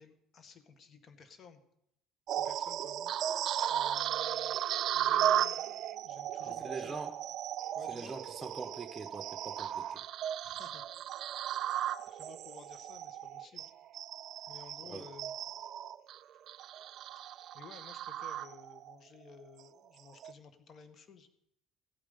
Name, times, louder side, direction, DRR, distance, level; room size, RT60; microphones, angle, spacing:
voice 1, 0.0-1.6 2.3-3.1 3.7-4.6 4.9-7.0 7.7-8.1 10.4-10.8 12.1-13.7 14.5-15.3 17.3-21.3, left 5 dB, 45° left, 9 dB, 1.8 m, -55 dB
sound 1, 2.3-18.9 19.4-19.6 20.1-20.3, right 11 dB, 60° right, 0.4 m, -36 dB
voice 2, 6.4-7.1 7.9-10.0 14.9-15.0, right 4 dB, 20° right, 5 dB, 1.0 m, -43 dB
15.5 x 8.6 x 5.6 m, 0.77 s
hypercardioid pair, 70°, 0 cm